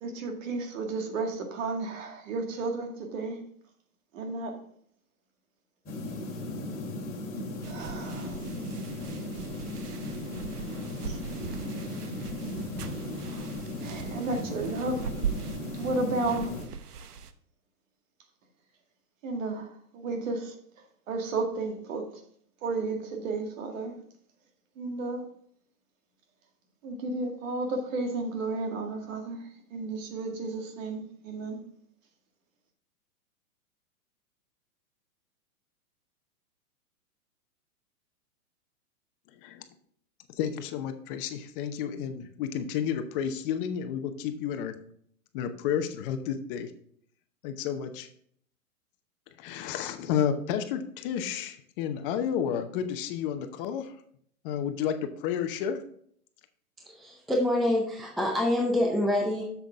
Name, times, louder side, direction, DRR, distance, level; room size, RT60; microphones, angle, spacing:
voice 1, 0.0-3.4 4.1-4.6 7.7-8.4 11.1-11.2 13.8-15.0 15.7-16.5 19.2-20.5 21.1-22.1 22.6-24.0 24.8-25.2 26.8-31.6, right 3 dB, 55° right, 2.0 m, -33 dB
sound 1, 5.9-16.7, left 1 dB, 20° left, 2.3 m, -36 dB
sound 2, 7.6-17.3, right 7 dB, 80° right, 0.9 m, -40 dB
voice 2, 40.3-44.8 45.3-46.7 47.4-48.1 49.4-53.9 54.4-55.8, left 8 dB, 35° left, 0.8 m, -31 dB
voice 3, 56.8-59.4, left 1 dB, ahead, 0.5 m, -26 dB
7.3 x 7.2 x 3.5 m
hypercardioid pair, 125°, 45 cm